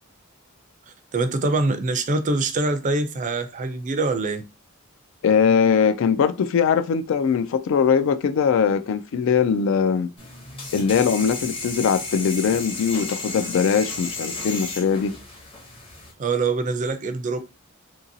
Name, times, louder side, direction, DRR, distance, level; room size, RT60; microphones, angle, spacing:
voice 1, 1.1-4.4 16.2-17.4, right 3 dB, 35° right, 0.4 m, -24 dB
voice 2, 5.2-10.1 10.7-15.2, left 6 dB, 65° left, 0.3 m, -21 dB
sound 1, 10.2-16.1, left 3 dB, 25° left, 0.8 m, -33 dB
2.8 x 2.6 x 2.6 m
head